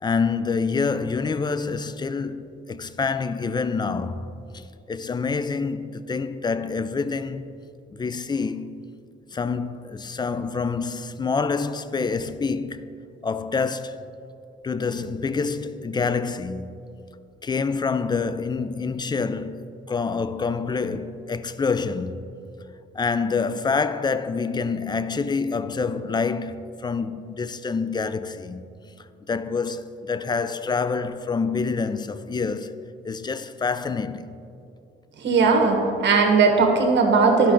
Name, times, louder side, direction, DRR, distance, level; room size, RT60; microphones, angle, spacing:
voice 1, 0.0-7.5 8.0-8.7 9.3-12.8 13.2-14.0 14.6-16.7 17.4-22.2 22.9-28.6 29.3-32.7 33.0-34.3, left 4 dB, 20° left, 0.4 m, -27 dB
voice 2, 35.2-35.8 36.0-37.5, right 4 dB, 65° right, 1.4 m, -18 dB
11.5 x 5.6 x 3.8 m
cardioid pair, 90°, 20 cm